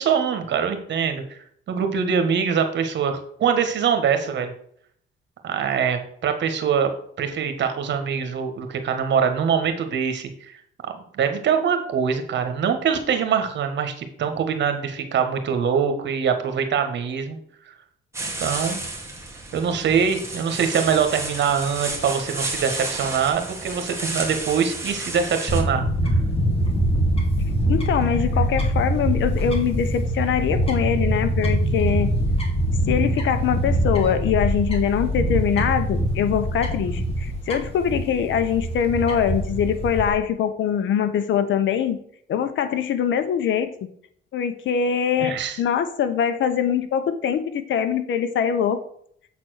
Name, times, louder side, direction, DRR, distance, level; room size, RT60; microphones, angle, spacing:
voice 1, 0.0-1.4 1.7-4.5 5.4-10.6 11.1-17.4 17.7-17.8 18.4-18.8 19.5-25.8 45.2-45.6, right 7 dB, 65° right, 7 dB, 1.5 m, -23 dB
sound 1, 18.1-25.6, right 2 dB, 15° right, 2.0 m, -32 dB
Fowl / Bird, 25.5-40.1, right 1 dB, 30° left, 2.1 m, -23 dB
voice 2, 27.7-32.1 32.9-42.0 42.3-43.7 44.3-48.8, left 8 dB, 75° left, 11 dB, 1.0 m, -23 dB
7.4 x 4.2 x 6.4 m, 0.65 s
cardioid pair, 90°, 20 cm